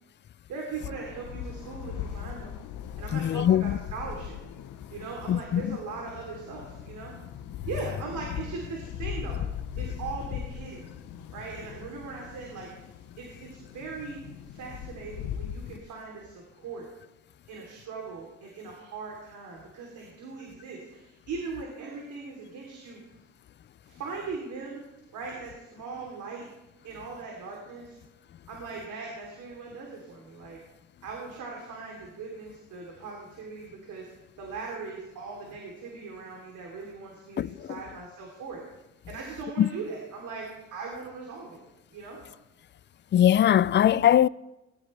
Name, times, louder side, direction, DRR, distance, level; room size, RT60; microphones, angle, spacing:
voice 1, 0.5-2.5 3.0-4.4 4.9-7.1 7.7-9.4 9.8-10.9 11.3-12.9 13.2-14.2 14.5-16.9 17.5-23.0 23.8-24.8 25.1-26.4 26.8-28.0 28.5-30.6 31.0-34.1 34.4-38.6 39.1-41.6 41.9-42.2, right 4 dB, 80° right, 3.2 m, -39 dB
sound 1, 0.8-15.8, left 9 dB, 80° left, 0.9 m, -39 dB
voice 2, 3.1-3.8 5.3-5.8 37.4-37.7 39.6-39.7 43.1-44.3, left 10 dB, 40° left, 0.4 m, -21 dB
19.5 x 13.0 x 3.3 m
cardioid pair, 90°, 30 cm